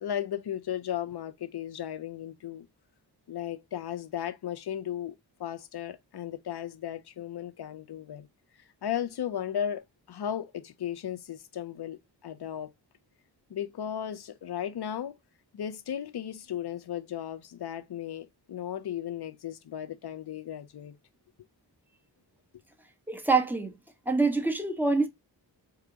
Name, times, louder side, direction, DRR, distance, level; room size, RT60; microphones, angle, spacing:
voice 1, 0.0-2.7 3.3-5.1 5.4-8.3 8.8-9.8 10.1-12.7 13.5-15.1 15.5-21.0, left 10 dB, 65° left, 0.7 m, -35 dB
voice 2, 23.1-23.7 24.1-25.1, right 3 dB, 5° right, 1.1 m, -25 dB
4.9 x 2.3 x 3.9 m
wide cardioid pair, 70°, 42 cm